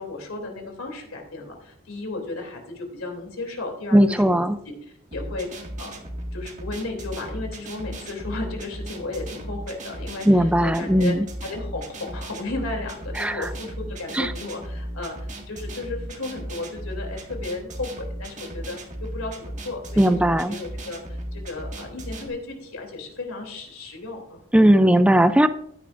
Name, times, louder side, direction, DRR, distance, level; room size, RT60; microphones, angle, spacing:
voice 1, 0.0-4.4 4.6-4.7 5.1-6.0 6.3-24.4, left 3 dB, 80° left, 2 dB, 3.0 m, -34 dB
voice 2, 3.9-4.6 10.3-11.2 13.2-13.5 14.1-14.3 20.0-20.6 24.5-25.5, right 1 dB, 5° right, 11 dB, 0.4 m, -18 dB
sound 1, 5.1-22.3, right 1 dB, 35° right, 1.8 m, -36 dB
15.0 x 9.9 x 2.5 m, 0.69 s
head